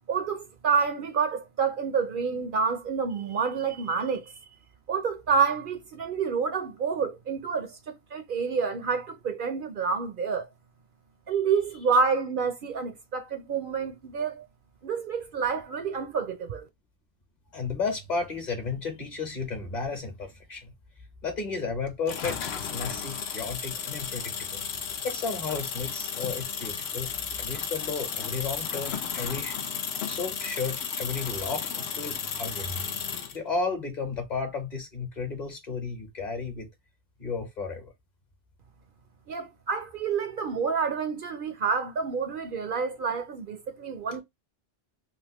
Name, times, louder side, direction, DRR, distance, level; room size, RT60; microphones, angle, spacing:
voice 1, 0.1-4.3 4.9-10.5 11.3-14.5 14.8-16.7 39.3-44.2, right 5 dB, 60° right, 0.7 m, -28 dB
voice 2, 17.5-20.7 21.2-24.6 25.0-27.1 27.4-29.6 30.1-32.8 33.3-36.7 37.2-37.9, left 4 dB, 45° left, 1.2 m, -33 dB
sound 1, 22.1-33.4, left 7 dB, 75° left, 0.9 m, -34 dB
3.4 x 2.5 x 2.9 m
omnidirectional pair, 1.1 m